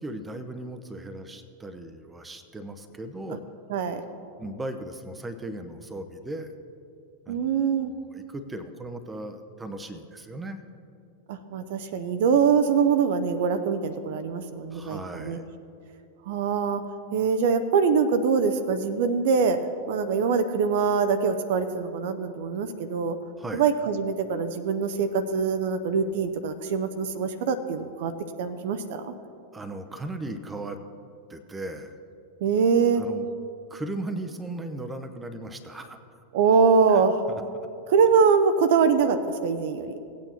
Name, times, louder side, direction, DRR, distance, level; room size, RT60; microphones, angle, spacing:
voice 1, 0.0-3.4 4.4-6.5 7.3-7.6 7.9-10.6 14.7-15.4 23.4-23.6 29.5-30.8 31.3-32.0 33.0-33.3 33.7-36.0 36.9-37.4, right 1 dB, 10° right, 8 dB, 0.7 m, -37 dB
voice 2, 3.7-4.0 7.3-7.9 11.3-15.4 16.3-16.8 17.1-19.6 19.9-23.2 23.5-28.1 28.4-29.1 32.4-33.0 36.3-37.2 37.9-39.9, right 5 dB, 55° right, 9 dB, 0.5 m, -23 dB
17.5 x 8.8 x 2.9 m, 2.5 s
figure-of-eight pair, 90°, 0 cm